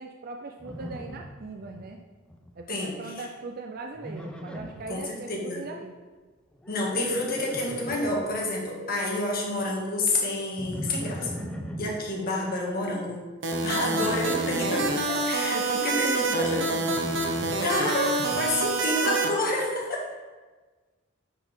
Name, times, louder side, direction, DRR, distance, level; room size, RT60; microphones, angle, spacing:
voice 1, 0.0-2.0 2.6-5.9 15.5-17.0, right 3 dB, 50° right, 2 dB, 0.5 m, -39 dB
Livestock farm animals working animals, 0.6-1.9 2.1-2.7 4.0-4.9 6.5-8.3 10.6-12.0 13.9-15.1 16.8-18.6, equal, 5° left, 0.5 m, -39 dB
voice 2, 2.7-3.2 4.9-5.6 6.7-11.3 11.8-13.2 13.6-16.6 17.6-20.1, left 2 dB, 50° left, -2 dB, 1.6 m, -29 dB
sound 1, 13.4-19.3, right 3 dB, 65° right, 0.9 m, -27 dB
9.7 x 4.7 x 3.7 m, 1.3 s
head